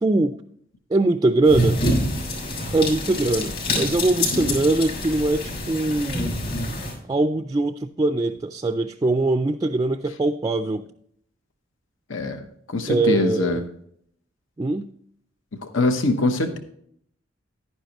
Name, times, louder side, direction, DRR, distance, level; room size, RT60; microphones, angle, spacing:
voice 1, 0.0-0.4 0.9-1.8 2.7-6.3 7.1-10.8 12.9-13.6 14.6-14.9, right 2 dB, 20° right, 0.3 m, -22 dB
sound 1, 1.5-6.9, left 1 dB, 55° left, 4.3 m, -26 dB
voice 2, 12.1-12.4 12.7-13.6 15.7-16.6, left 2 dB, 90° left, 1.0 m, -23 dB
11.0 x 10.0 x 3.0 m
head